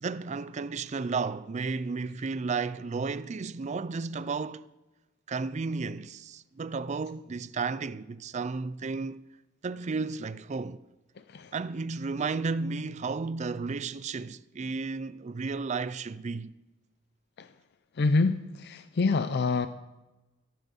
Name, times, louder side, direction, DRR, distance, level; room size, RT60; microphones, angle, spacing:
voice 1, 0.0-4.7 5.3-9.2 9.6-10.8 11.5-16.5, right 4 dB, 35° right, 0.4 m, -33 dB
voice 2, 18.0-19.7, left 3 dB, 55° left, 0.5 m, -26 dB
14.0 x 7.6 x 7.1 m
head